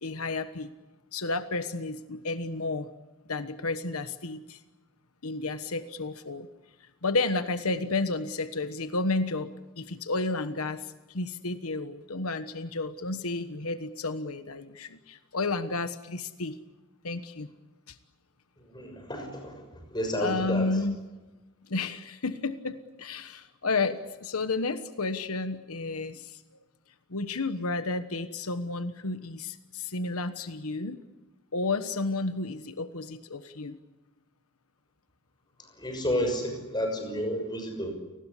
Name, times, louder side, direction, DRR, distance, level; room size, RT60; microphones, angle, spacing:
voice 1, 0.0-0.7 1.1-2.9 3.3-4.6 5.2-6.5 7.0-16.6 17.0-17.5 17.9-18.0 20.2-21.0 21.7-26.4 27.1-31.0 31.5-33.8, left 3 dB, 90° left, 10 dB, 1.3 m, -31 dB
voice 2, 18.7-19.5 19.9-20.6 35.8-37.9, equal, 20° left, 5 dB, 6.3 m, -30 dB
29.5 x 20.0 x 8.4 m, 1.1 s
head